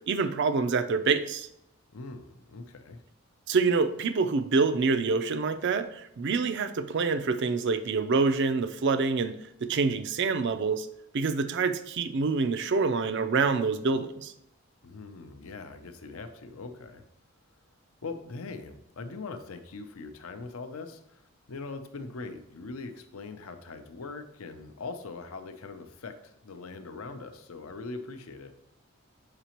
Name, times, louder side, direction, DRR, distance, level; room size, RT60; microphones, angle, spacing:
voice 1, 0.1-1.5 3.5-9.3 9.6-10.9 11.1-14.3, right 4 dB, 50° right, 11 dB, 0.4 m, -26 dB
voice 2, 1.9-3.0 14.8-17.0 18.0-21.2 21.5-28.5, left 3 dB, 75° left, 9 dB, 0.6 m, -41 dB
6.7 x 4.9 x 2.9 m, 0.78 s
head